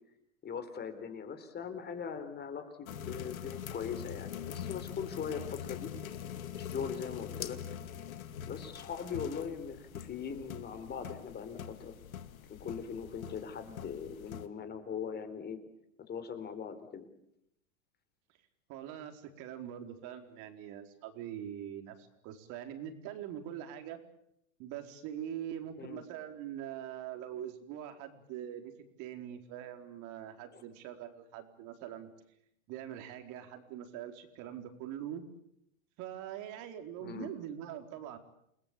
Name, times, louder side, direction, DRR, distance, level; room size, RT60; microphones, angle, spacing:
voice 1, 0.4-5.9 6.6-7.6 8.4-11.9 12.5-15.6 16.1-17.1 25.8-26.0 30.5-30.6 37.0-37.3, left 7 dB, 25° left, 9 dB, 4.2 m, -40 dB
sound 1, 2.9-14.5, left 9 dB, 85° left, 2.4 m, -43 dB
voice 2, 18.7-24.0 24.6-28.7 29.0-32.1 32.7-35.2 36.0-38.2, right 10 dB, 45° right, 6 dB, 4.5 m, -43 dB
29.0 x 20.0 x 8.6 m, 0.78 s
hypercardioid pair, 120°, 40 cm